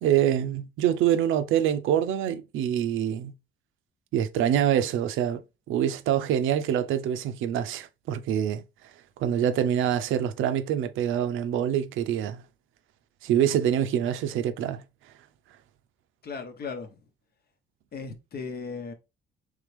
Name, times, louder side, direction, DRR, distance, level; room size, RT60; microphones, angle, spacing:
voice 1, 0.0-3.3 4.1-5.4 5.7-8.6 9.2-12.4 13.2-14.8, right 10 dB, 85° right, 0.5 m, -25 dB
voice 2, 16.2-16.9 17.9-18.9, left 5 dB, 50° left, 1.0 m, -36 dB
3.6 x 3.4 x 3.2 m
cardioid pair, 90°, 20 cm